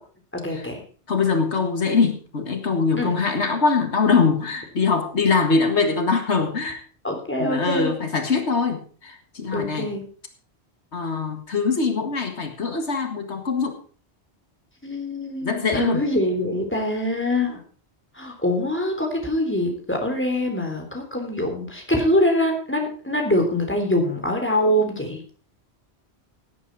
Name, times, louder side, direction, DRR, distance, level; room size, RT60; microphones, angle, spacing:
voice 1, 0.3-0.8 3.0-3.2 7.0-7.9 9.5-10.0 14.8-17.6 18.2-25.2, left 1 dB, 10° left, 2 dB, 3.5 m, -24 dB
voice 2, 1.1-6.8 7.4-9.9 10.9-13.8 15.4-16.0, left 4 dB, 85° left, 6 dB, 2.1 m, -23 dB
17.0 x 8.8 x 4.7 m, 0.40 s
omnidirectional pair, 1.1 m